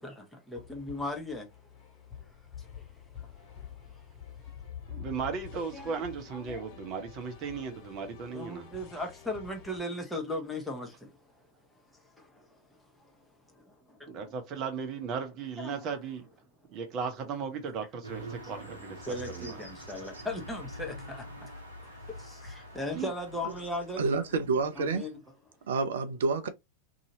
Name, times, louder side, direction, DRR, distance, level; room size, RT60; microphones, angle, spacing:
voice 1, 0.0-1.5 5.7-6.0 6.3-6.7 8.3-10.9 15.6-15.8 18.4-18.7 19.1-21.3 22.3-24.0 24.8-25.2, left 1 dB, 5° left, 1.0 m, -37 dB
sound 1, 0.5-9.8, left 8 dB, 45° left, 1.8 m, -47 dB
voice 2, 4.9-8.7 14.1-16.3 16.7-19.6 22.9-23.1, right 6 dB, 35° right, 0.9 m, -36 dB
sound 2, 18.0-25.0, right 1 dB, 80° right, 0.9 m, -45 dB
voice 3, 24.0-25.1 25.7-26.5, right 4 dB, 60° right, 0.5 m, -28 dB
2.8 x 2.7 x 2.7 m
figure-of-eight pair, 90°, 0 cm